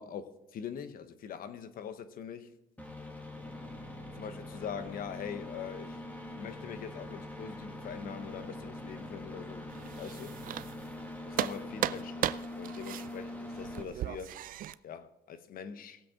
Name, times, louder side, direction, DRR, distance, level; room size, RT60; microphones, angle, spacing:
voice 1, 0.0-2.5 4.1-6.0 6.4-9.7 10.0-10.4 11.3-14.4 14.8-16.0, left 7 dB, 60° left, 1.0 m, -43 dB
sound 1, 2.8-13.8, left 1 dB, 10° left, 1.7 m, -43 dB
sound 2, 9.7-11.0 11.3-14.7, right 12 dB, 55° right, 0.4 m, -36 dB
18.0 x 7.8 x 3.7 m
cardioid pair, 110°, 17 cm